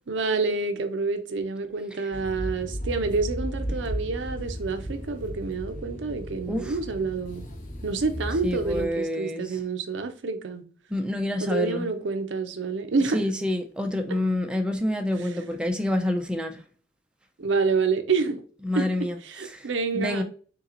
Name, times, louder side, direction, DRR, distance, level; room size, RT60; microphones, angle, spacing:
voice 1, 0.1-7.5 7.8-10.6 11.4-13.2 15.2-15.3 17.4-18.4 18.8-20.2, right 4 dB, 70° right, 0.5 m, -28 dB
sound 1, 2.1-8.9, equal, 45° left, 0.9 m, -35 dB
voice 2, 8.4-9.6 10.9-11.9 13.1-16.6 18.6-19.2 19.5-19.7 19.9-20.2, left 1 dB, 5° right, 0.4 m, -27 dB
3.8 x 2.9 x 3.7 m
head